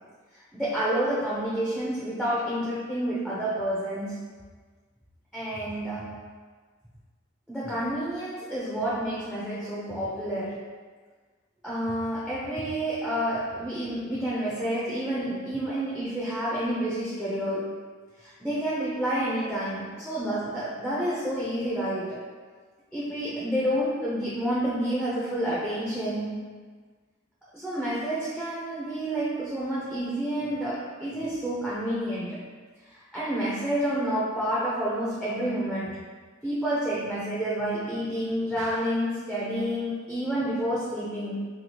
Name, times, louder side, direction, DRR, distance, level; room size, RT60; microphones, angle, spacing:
voice 1, 0.5-4.3 5.3-6.3 7.5-10.7 11.6-17.8 18.2-22.2 22.9-26.6 27.5-32.5 32.9-36.0 36.4-41.4, right 1 dB, ahead, -9 dB, 0.4 m, -29 dB
2.9 x 2.3 x 2.8 m, 1.5 s
head